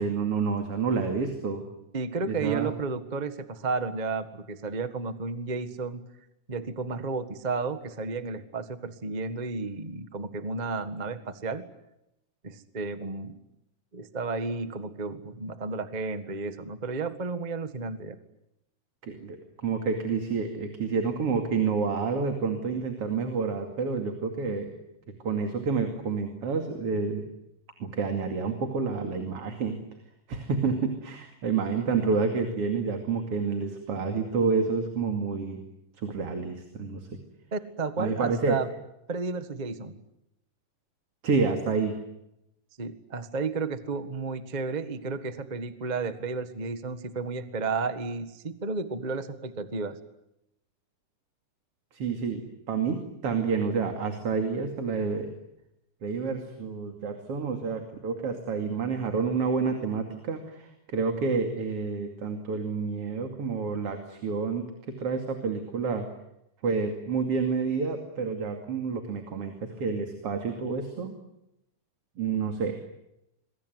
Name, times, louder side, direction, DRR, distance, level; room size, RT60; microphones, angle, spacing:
voice 1, 0.0-1.7 2.3-2.7 19.0-24.7 25.2-27.3 27.9-29.8 30.3-35.6 36.0-37.1 38.0-38.6 41.2-41.9 51.9-55.3 56.0-64.6 65.0-66.1 66.6-71.1 72.2-72.8, right 5 dB, 45° right, 5 dB, 3.3 m, -29 dB
voice 2, 1.9-6.0 6.5-11.6 12.4-13.4 13.9-18.2 37.5-38.7 39.1-40.0 42.8-50.0, right 4 dB, 30° right, 10 dB, 0.7 m, -32 dB
27.0 x 22.5 x 9.4 m, 0.85 s
omnidirectional pair, 3.7 m